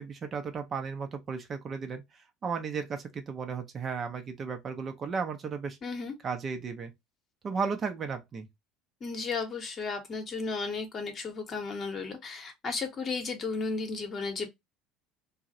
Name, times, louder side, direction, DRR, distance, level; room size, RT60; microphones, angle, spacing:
voice 1, 0.0-5.8 6.2-6.9 7.4-8.5, right 5 dB, 35° right, 0.5 m, -34 dB
voice 2, 5.8-6.1 9.0-14.5, left 4 dB, 35° left, 0.8 m, -34 dB
2.2 x 2.0 x 2.7 m
figure-of-eight pair, 65°, 0 cm